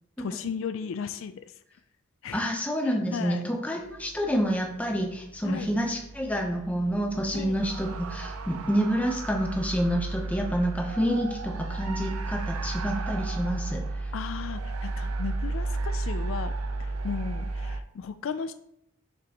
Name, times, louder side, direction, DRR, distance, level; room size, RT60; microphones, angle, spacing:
voice 1, 0.2-1.3 2.2-2.5 2.8-3.5 5.4-5.8 7.3-7.6 14.1-16.5 16.8-18.5, left 6 dB, 65° left, 11 dB, 0.3 m, -35 dB
voice 2, 2.3-13.8, equal, 5° left, 1 dB, 0.8 m, -28 dB
sound 1, 3.8-17.8, right 3 dB, 90° right, 0.6 m, -34 dB
6.6 x 5.3 x 2.9 m, 0.76 s
head